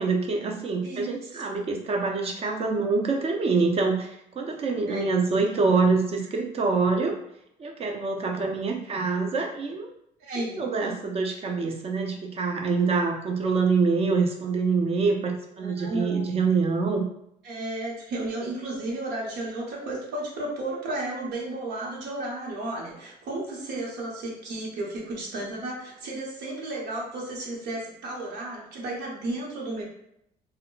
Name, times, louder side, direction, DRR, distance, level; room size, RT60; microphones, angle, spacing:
voice 1, 0.0-7.2 7.6-9.9 10.4-17.1, right 4 dB, 35° right, 2 dB, 0.6 m, -25 dB
voice 2, 0.8-1.4 4.9-5.2 10.2-10.9 15.6-16.3 17.4-29.8, right 2 dB, 80° right, -3 dB, 0.9 m, -33 dB
2.2 x 2.1 x 3.8 m, 0.75 s
cardioid pair, 110°, 17 cm